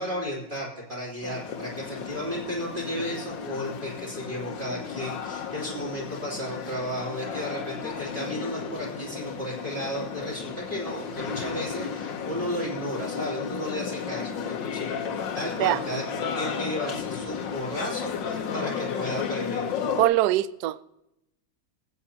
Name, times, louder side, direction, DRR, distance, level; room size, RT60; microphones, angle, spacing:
voice 1, 0.0-15.0 15.3-19.7, equal, 25° right, 3.2 m, -34 dB
sound 1, 1.2-20.1, left 7 dB, 65° left, 1.6 m, -33 dB
voice 2, 20.0-20.8, right 15 dB, 80° right, 0.9 m, -22 dB
25.0 x 8.3 x 2.9 m
omnidirectional pair, 2.2 m